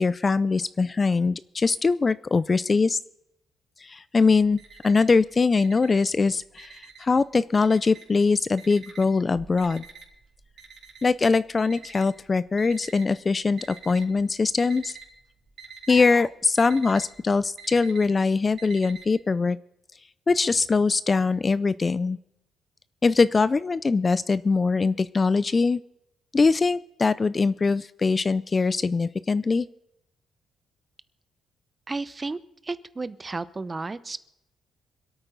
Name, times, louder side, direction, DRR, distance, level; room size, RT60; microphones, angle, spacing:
voice 1, 0.0-3.0 3.8-9.9 11.0-14.9 15.9-19.6 20.3-22.2 23.0-25.8 26.3-29.7, left 4 dB, 30° left, 17 dB, 0.4 m, -22 dB
Alarm, 4.2-5.2 5.5-7.2 7.6-8.2 8.6-13.1 13.6-14.2 14.5-15.1 15.4-19.1, right 5 dB, 60° right, 3.1 m, -45 dB
voice 2, 31.9-34.2, right 3 dB, 25° right, 14 dB, 0.7 m, -33 dB
26.5 x 8.9 x 3.9 m, 0.84 s
cardioid pair, 90°, 0 cm